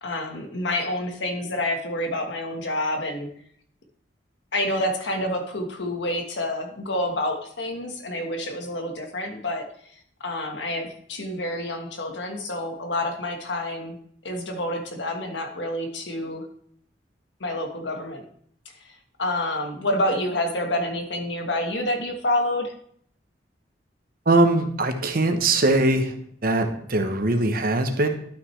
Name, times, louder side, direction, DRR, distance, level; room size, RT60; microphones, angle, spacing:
voice 1, 0.0-3.3 4.5-9.6 10.2-14.0 14.2-16.4 17.4-18.2 19.2-22.7, left 1 dB, 85° left, 4 dB, 1.4 m, -28 dB
voice 2, 24.3-26.1 26.4-28.1, right 2 dB, 55° right, 7 dB, 1.0 m, -21 dB
11.5 x 6.0 x 3.3 m, 0.64 s
head